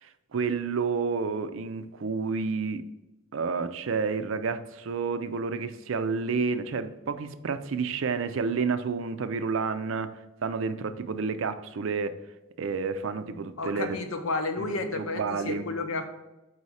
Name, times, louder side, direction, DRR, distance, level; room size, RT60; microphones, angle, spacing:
voice 1, 0.0-2.8 3.3-10.1 10.4-12.2 12.6-14.0 14.6-15.7, right 5 dB, 70° right, 10 dB, 0.4 m, -30 dB
voice 2, 13.6-16.1, left 3 dB, 85° left, 6 dB, 0.7 m, -31 dB
4.8 x 4.1 x 4.8 m, 1.0 s
head